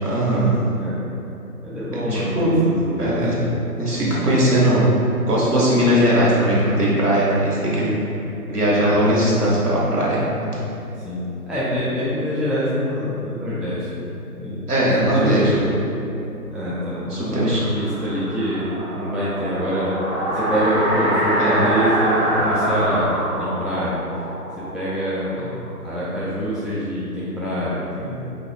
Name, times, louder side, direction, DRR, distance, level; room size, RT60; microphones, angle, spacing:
voice 1, 0.0-0.6 2.1-2.6 3.0-3.3 3.8-4.8 5.3-8.1 8.5-10.5 14.7-15.7 17.1-17.6 21.4-21.6, equal, 75° right, -7 dB, 1.1 m, -19 dB
voice 2, 1.6-3.5 8.8-9.0 11.1-14.6 15.1-15.7 16.5-20.0 20.3-24.0 24.6-25.4 25.8-28.2, equal, ahead, -10 dB, 0.3 m, -25 dB
sound 1, 16.9-25.7, right 1 dB, 45° right, 0.6 m, -25 dB
2.5 x 2.3 x 3.2 m, 2.8 s
figure-of-eight pair, 165°, 47 cm